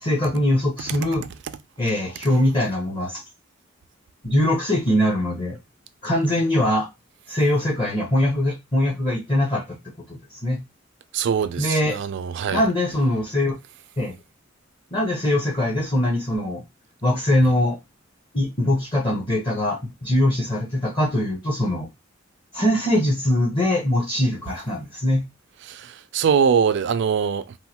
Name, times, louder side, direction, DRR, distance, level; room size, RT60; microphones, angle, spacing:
voice 1, 0.0-1.3 1.8-3.2 4.2-5.6 6.0-6.9 7.3-10.6 11.6-12.0 12.5-13.5 14.0-14.1 14.9-16.6 17.0-17.8 18.3-21.9 22.5-25.2, left 1 dB, 25° left, 0.7 m, -22 dB
voice 2, 11.1-12.7 25.7-27.5, right 7 dB, 60° right, 0.3 m, -22 dB
3.0 x 2.1 x 2.8 m
head